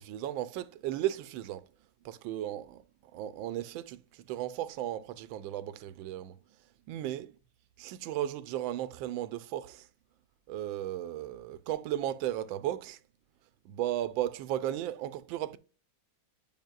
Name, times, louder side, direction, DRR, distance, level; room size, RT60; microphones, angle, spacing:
voice 1, 0.0-1.7 2.0-2.8 3.1-6.4 6.9-7.3 7.8-9.9 10.5-13.0 13.6-15.6, right 12 dB, 75° right, 1.2 m, -35 dB
9.0 x 5.1 x 2.4 m
omnidirectional pair, 2.3 m